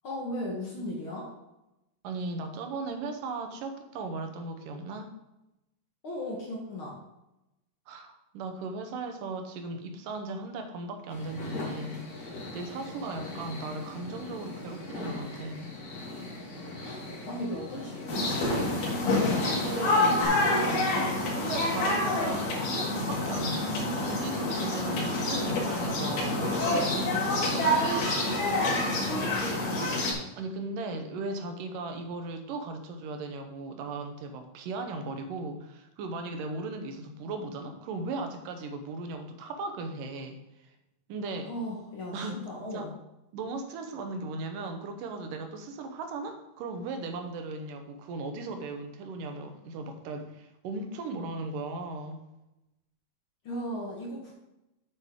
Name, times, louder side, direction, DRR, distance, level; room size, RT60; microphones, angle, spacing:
voice 1, 0.0-1.3 6.0-7.0 16.8-18.3 29.0-30.0 41.4-42.9 53.4-54.3, left 1 dB, 50° left, -2 dB, 1.7 m, -37 dB
voice 2, 2.0-5.1 7.9-15.7 19.2-28.4 30.4-40.7 41.1-41.5 42.1-43.0 43.3-52.2, right 3 dB, 80° right, 6 dB, 2.5 m, -37 dB
sound 1, 11.1-20.2, left 2 dB, 35° left, 1.8 m, -40 dB
sound 2, 18.1-30.1, left 2 dB, 75° left, 3.6 m, -27 dB
8.0 x 7.9 x 3.7 m, 0.92 s
omnidirectional pair, 3.9 m